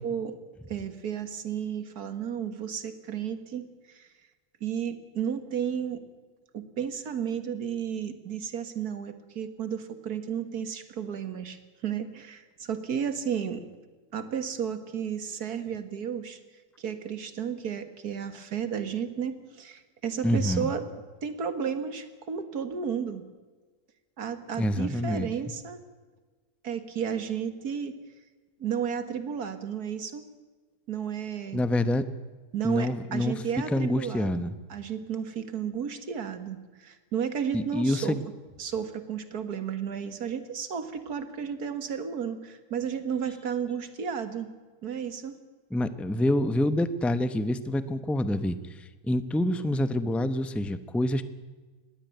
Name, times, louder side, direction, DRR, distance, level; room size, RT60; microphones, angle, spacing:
voice 1, 0.0-0.4 0.7-4.1 4.6-6.0 6.5-13.7 14.1-16.4 16.8-20.9 21.2-23.2 24.2-25.8 26.6-28.0 28.6-30.3 30.9-31.6 32.5-34.4 34.7-38.2 38.6-44.5 44.8-45.4, right 7 dB, 85° right, 10 dB, 2.1 m, -33 dB
voice 2, 20.2-20.7 24.6-25.3 31.5-32.1 32.6-33.4 33.7-34.5 37.5-38.2 45.7-51.2, left 1 dB, ahead, 12 dB, 0.6 m, -27 dB
20.0 x 16.5 x 9.2 m, 1.4 s
omnidirectional pair, 1.6 m